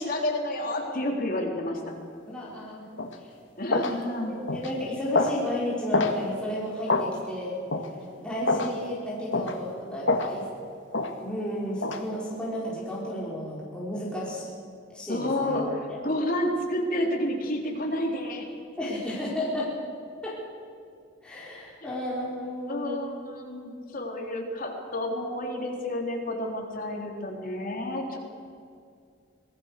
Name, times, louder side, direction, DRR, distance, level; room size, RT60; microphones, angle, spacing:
voice 1, 0.0-1.8 3.6-4.4 15.1-18.5 18.8-18.9 22.7-28.2, left 1 dB, 45° left, 0 dB, 3.8 m, -30 dB
voice 2, 2.3-2.8 3.7-7.6 8.2-10.4 11.2-14.5 14.9-15.5 18.8-19.7 20.2-20.4 21.2-23.1, left 1 dB, 5° left, -7 dB, 5.1 m, -33 dB
sound 1, 3.0-3.1 3.7-3.9 4.5-4.7 5.1-5.4 5.9-6.2 6.9-7.1 7.7-7.9 8.5-8.7 9.3-9.5 10.1-10.3 10.9-11.1 11.8-12.0, left 3 dB, 75° left, 2.0 m, -25 dB
25.5 x 19.5 x 6.8 m, 2.3 s
head